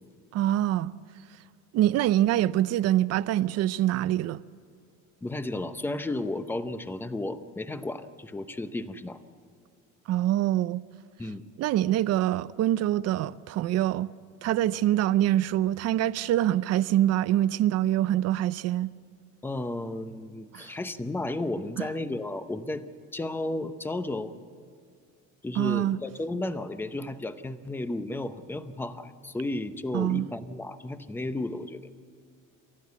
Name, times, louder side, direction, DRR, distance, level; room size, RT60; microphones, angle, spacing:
voice 1, 0.3-0.9 1.7-4.4 10.1-10.8 11.6-14.1 14.4-18.9 20.5-20.7 21.8-21.9 25.6-26.0 29.9-30.3, right 13 dB, 50° right, 0.6 m, -25 dB
voice 2, 5.2-9.2 11.2-11.4 19.4-22.8 23.1-24.3 25.4-31.9, left 2 dB, 5° left, 0.6 m, -33 dB
29.0 x 13.5 x 8.3 m
cardioid pair, 175°, 32 cm